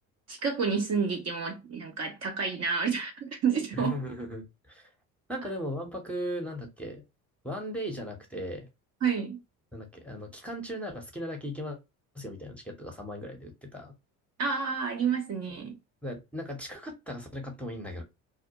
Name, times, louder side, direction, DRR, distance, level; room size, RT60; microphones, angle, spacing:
voice 1, 0.3-4.0 9.0-9.4 14.4-15.7, right 6 dB, 35° right, 0.6 m, -29 dB
voice 2, 3.7-4.9 5.3-7.0 7.4-8.7 9.7-11.8 12.1-13.9 15.6-15.7 16.0-18.0, equal, 5° left, 0.7 m, -37 dB
2.2 x 2.1 x 2.7 m
hypercardioid pair, 70°, 44 cm